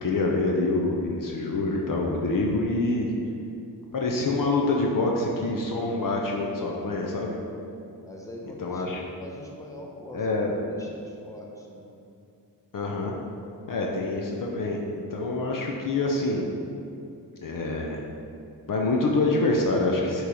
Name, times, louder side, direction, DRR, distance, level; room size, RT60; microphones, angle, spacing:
voice 1, 0.0-3.1 3.9-7.4 8.6-9.0 10.1-10.6 12.7-13.2 13.7-14.8 15.1-16.5 17.4-18.0 18.7-20.2, left 2 dB, 50° left, -1 dB, 0.7 m, -26 dB
voice 2, 8.0-10.4 10.7-11.9, left 1 dB, 10° left, -2 dB, 0.9 m, -43 dB
6.5 x 3.2 x 4.8 m, 2.5 s
cardioid pair, 80°, 42 cm